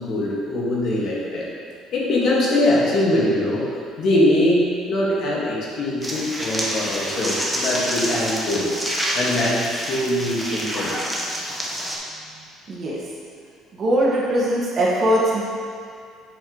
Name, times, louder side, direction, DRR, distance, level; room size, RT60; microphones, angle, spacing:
voice 1, 0.0-1.5 1.9-3.7 4.0-8.7 9.1-11.3, left 1 dB, 55° left, -5 dB, 1.7 m, -22 dB
sound 1, 6.0-12.0, equal, 5° right, 1.0 m, -27 dB
voice 2, 12.7-13.0 13.7-15.4, right 1 dB, 40° right, -5 dB, 1.7 m, -20 dB
7.7 x 5.9 x 3.1 m, 2.3 s
cardioid pair, 105°, 0 cm